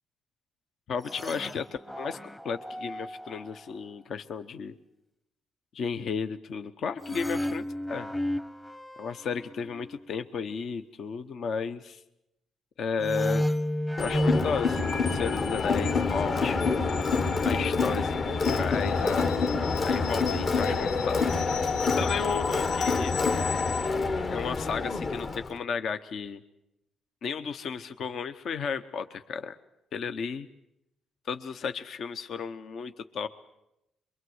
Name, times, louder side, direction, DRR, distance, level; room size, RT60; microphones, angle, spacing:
voice 1, 0.9-1.7 2.0-2.2 2.4-4.7 5.7-8.1 9.0-12.0 12.8-13.5 14.0-16.6 17.4-19.3 19.9-21.6 22.0-23.1 24.3-26.4 27.2-29.6 29.9-30.5 31.3-33.3, left 6 dB, 65° left, 10 dB, 1.0 m, -33 dB
sound 1, 1.0-3.6 7.0-10.1 13.0-16.2, equal, 5° left, 0.9 m, -33 dB
sound 2, 14.0-23.9, left 5 dB, 85° left, 1.1 m, -34 dB
Crowd, 14.0-25.5, left 4 dB, 40° left, 1.2 m, -28 dB
24.0 x 23.5 x 8.0 m, 0.86 s
cardioid pair, 90°, 0 cm